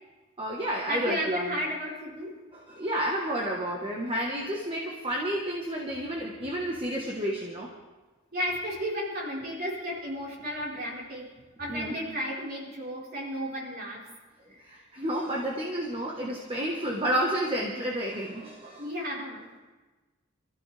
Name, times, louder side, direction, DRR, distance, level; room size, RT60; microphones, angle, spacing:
voice 1, 0.4-1.6 2.5-7.7 11.7-12.0 14.6-18.9, equal, 25° right, -2 dB, 1.3 m, -31 dB
voice 2, 0.9-2.3 8.3-11.3 11.6-14.0 14.5-14.6 18.8-19.5, equal, 45° right, -5 dB, 4.4 m, -33 dB
25.5 x 14.0 x 3.4 m, 1.2 s
head